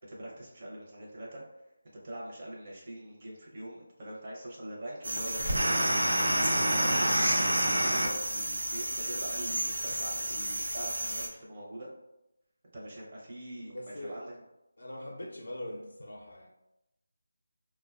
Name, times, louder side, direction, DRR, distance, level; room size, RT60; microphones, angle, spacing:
voice 1, 0.0-1.4 2.0-6.1 6.6-11.9 12.7-14.3, right 1 dB, 35° right, -4 dB, 0.6 m, -43 dB
sound 1, 5.0-11.3, right 1 dB, 90° right, 0.5 m, -29 dB
voice 2, 6.5-6.8 13.7-14.3 14.8-16.5, left 1 dB, 75° left, -1 dB, 0.4 m, -42 dB
2.5 x 2.2 x 2.3 m, 0.91 s
figure-of-eight pair, 170°, 0 cm